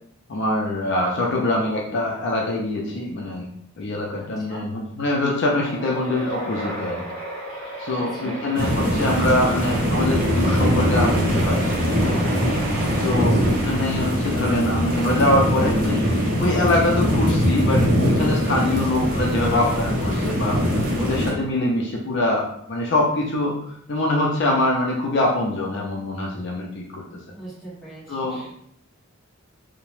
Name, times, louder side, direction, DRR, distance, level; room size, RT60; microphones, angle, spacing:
voice 1, 0.3-3.5 3.8-7.0 7.8-12.3 13.0-23.5 23.9-27.0 28.1-28.4, left 1 dB, 55° left, -1 dB, 0.4 m, -24 dB
voice 2, 1.2-1.7 4.1-4.6 8.0-8.4 13.1-13.5 19.0-19.4 27.3-28.5, right 1 dB, ahead, -9 dB, 1.0 m, -41 dB
sound 1, 5.6-14.4, right 1 dB, 20° left, 1.0 m, -35 dB
sound 2, 8.5-21.3, equal, 40° right, 0.6 m, -22 dB
2.8 x 2.1 x 3.1 m, 0.69 s
head